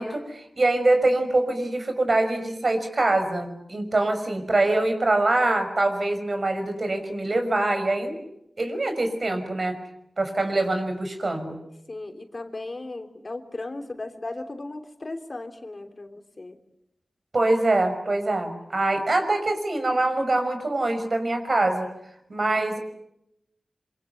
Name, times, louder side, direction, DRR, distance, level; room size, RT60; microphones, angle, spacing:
voice 1, 0.0-8.2 8.6-9.8 10.2-11.6 17.3-21.9 22.3-22.8, right 2 dB, 50° right, 7 dB, 5.8 m, -24 dB
voice 2, 11.9-16.6, left 2 dB, 45° left, 7 dB, 3.1 m, -36 dB
26.0 x 24.0 x 9.3 m, 0.81 s
cardioid pair, 55°, 0 cm